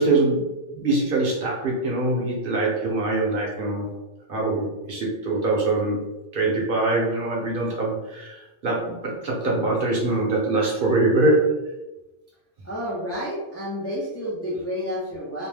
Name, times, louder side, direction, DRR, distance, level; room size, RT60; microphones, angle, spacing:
voice 1, 0.0-3.9 4.3-6.0 6.3-11.5, right 2 dB, 55° right, -3 dB, 0.8 m, -23 dB
voice 2, 12.6-15.5, equal, 25° left, -6 dB, 0.3 m, -30 dB
2.8 x 2.0 x 3.2 m, 1.0 s
omnidirectional pair, 1.2 m